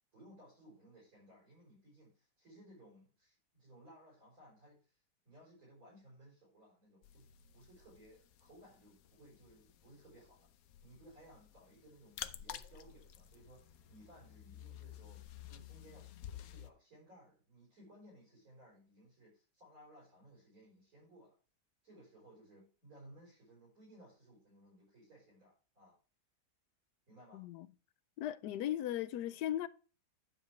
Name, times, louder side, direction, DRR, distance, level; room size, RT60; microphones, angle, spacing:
voice 1, 0.1-7.3 7.5-10.5 10.8-21.4 21.8-26.0 27.1-27.5, right 1 dB, 55° right, 5.8 m, -60 dB
sound 1, 7.0-16.7, left 11 dB, 65° left, 1.1 m, -52 dB
voice 2, 27.3-27.7 28.2-29.7, left 12 dB, 85° left, 1.2 m, -37 dB
10.5 x 7.1 x 3.3 m
omnidirectional pair, 1.8 m